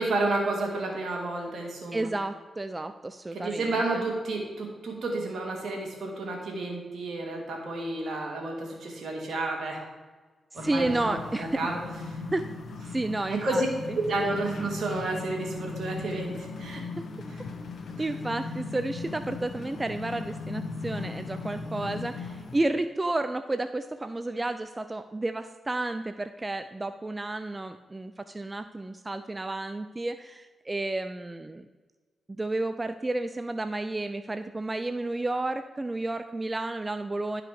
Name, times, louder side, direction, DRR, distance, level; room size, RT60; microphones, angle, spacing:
voice 1, 0.0-2.1 3.3-9.8 10.5-11.8 13.3-13.7 13.9-16.8 17.3-17.4, right 2 dB, 70° right, 0 dB, 2.2 m, -31 dB
voice 2, 1.9-4.1 10.5-11.5 12.3-12.5 12.9-13.6 13.9-14.0 17.0-17.1 18.0-31.7 32.3-37.4, right 2 dB, 25° right, 10 dB, 0.4 m, -31 dB
sound 1, 10.6-22.6, left 3 dB, 65° left, 0.9 m, -38 dB
11.0 x 5.0 x 4.8 m, 1.3 s
cardioid pair, 55°, 0 cm